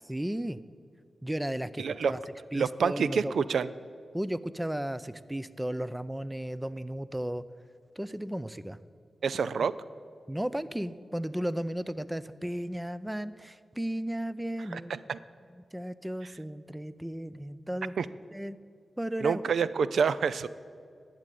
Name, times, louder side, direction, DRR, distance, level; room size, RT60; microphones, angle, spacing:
voice 1, 0.0-0.6 1.2-2.2 2.5-3.3 4.1-7.4 8.0-8.8 10.3-14.9 15.5-18.6 19.0-19.4, right 1 dB, 10° right, 15 dB, 0.5 m, -34 dB
voice 2, 1.8-2.1 2.5-3.7 9.2-9.7 14.7-15.2 18.0-18.1 19.2-20.5, right 6 dB, 90° right, 15 dB, 0.4 m, -27 dB
12.0 x 7.8 x 9.2 m, 2.2 s
cardioid pair, 70°, 0 cm